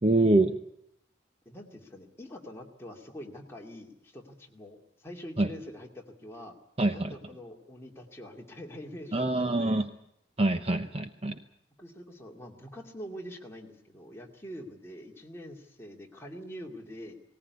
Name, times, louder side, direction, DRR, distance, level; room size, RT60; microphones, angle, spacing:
voice 1, 0.0-0.6 5.4-5.5 6.8-7.1 9.1-9.9 10.4-11.4, right 2 dB, 30° right, 9 dB, 0.8 m, -25 dB
voice 2, 1.5-6.5 6.9-9.8 11.8-17.1, equal, 10° left, 0 dB, 2.4 m, -45 dB
19.0 x 18.5 x 9.5 m, 0.73 s
head